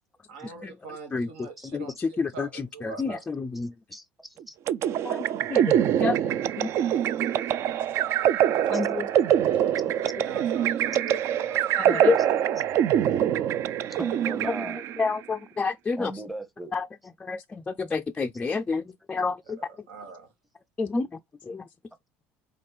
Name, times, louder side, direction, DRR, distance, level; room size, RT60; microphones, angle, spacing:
voice 1, 0.3-3.2 8.6-8.7 9.6-12.1 19.6-20.3, right 5 dB, 90° right, 1.2 m, -43 dB
voice 2, 1.1-3.7 5.0-6.3 6.6-6.7 8.7-9.1 11.8-12.2 15.0-16.1 16.7-16.9 17.2-19.6 20.8-21.7, left 4 dB, 20° left, 0.3 m, -29 dB
voice 3, 3.9-4.6 8.7-8.9 9.9-10.0 13.9-14.8 16.0-16.7, right 1 dB, ahead, 0.8 m, -38 dB
sound 1, 4.7-15.1, right 10 dB, 55° right, 0.4 m, -24 dB
4.2 x 3.7 x 3.2 m
supercardioid pair, 100°, 6 cm